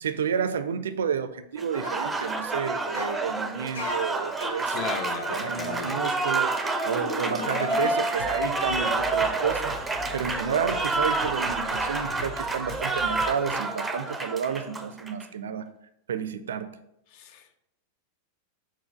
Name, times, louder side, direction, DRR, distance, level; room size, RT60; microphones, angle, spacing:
voice 1, 0.0-5.0 5.3-9.8 10.1-15.7 16.1-16.8, right 7 dB, 65° right, 0.4 m, -31 dB
Applause, 1.6-15.2, right 3 dB, 10° right, 0.5 m, -29 dB
sound 1, 1.7-2.0 2.8-3.2 3.7-8.3 8.6-8.9 11.3-11.4, left 2 dB, 75° left, 1.6 m, -37 dB
voice 2, 4.7-6.0 17.1-17.6, left 6 dB, 45° left, 0.6 m, -36 dB
sound 2, 8.2-13.5, left 3 dB, 60° left, 1.2 m, -42 dB
4.6 x 4.5 x 5.0 m
figure-of-eight pair, 90°, 0 cm